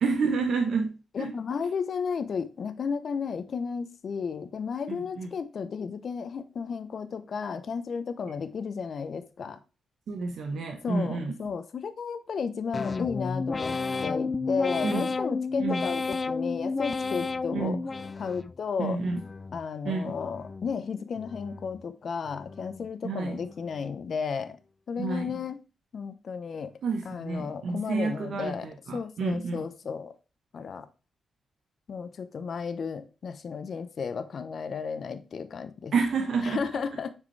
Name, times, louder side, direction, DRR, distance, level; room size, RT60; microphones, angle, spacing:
voice 1, 0.0-1.3 4.9-5.3 10.1-11.3 14.8-15.1 15.6-15.8 17.5-17.8 18.8-19.2 19.8-20.1 23.0-23.4 25.0-25.4 26.8-29.6 35.9-36.6, right 4 dB, 70° right, 1.1 m, -29 dB
voice 2, 1.1-9.6 10.8-17.8 18.2-19.0 19.5-24.6 24.9-25.6 25.9-26.7 27.0-30.1 30.5-30.9 31.9-35.9 36.4-37.1, left 6 dB, 65° left, 0.8 m, -33 dB
sound 1, 12.7-18.6 19.0-19.6 20.1-20.7 21.2-21.8 22.3-22.9 23.4-23.9, left 4 dB, 40° left, 0.4 m, -32 dB
7.1 x 4.8 x 3.2 m
supercardioid pair, 50°, 0 cm